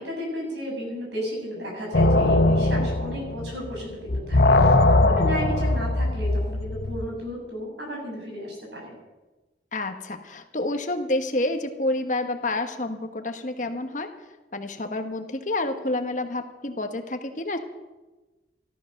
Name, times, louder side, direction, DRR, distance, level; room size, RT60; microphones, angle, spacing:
voice 1, 0.0-9.0, equal, 85° right, -1 dB, 6.9 m, -34 dB
sound 1, 1.9-3.8 4.1-7.1, left 2 dB, 65° left, 0.9 m, -20 dB
voice 2, 9.7-14.1 14.5-17.6, left 2 dB, 45° left, 7 dB, 1.3 m, -29 dB
14.5 x 13.5 x 6.5 m, 1.1 s
head